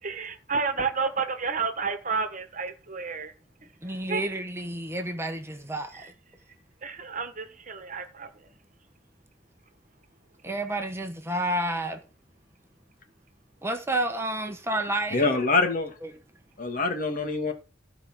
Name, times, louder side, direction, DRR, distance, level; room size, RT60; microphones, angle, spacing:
voice 1, 0.0-3.3 4.1-4.2 5.9-6.1 6.8-8.5, right 4 dB, 45° right, 1.6 m, -31 dB
voice 2, 3.8-6.1 10.4-12.0 13.6-15.2 16.0-16.1, right 1 dB, 15° right, 1.2 m, -30 dB
voice 3, 15.1-15.9 16.6-17.5, left 3 dB, 45° left, 2.3 m, -25 dB
15.0 x 5.1 x 6.2 m
head